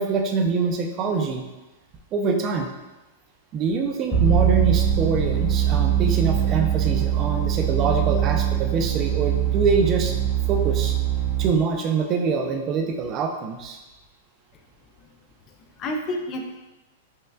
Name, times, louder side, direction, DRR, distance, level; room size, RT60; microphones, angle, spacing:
voice 1, 0.0-1.4 2.1-2.7 3.5-10.1 10.5-10.9 11.4-13.8, right 5 dB, 30° right, 3 dB, 0.5 m, -24 dB
sound 1, 4.1-11.5, right 10 dB, 5° left, 0.8 m, -22 dB
voice 2, 15.5-16.6, left 1 dB, 30° left, 3 dB, 0.3 m, -31 dB
5.4 x 2.3 x 2.3 m, 1.1 s
hypercardioid pair, 135°, 0 cm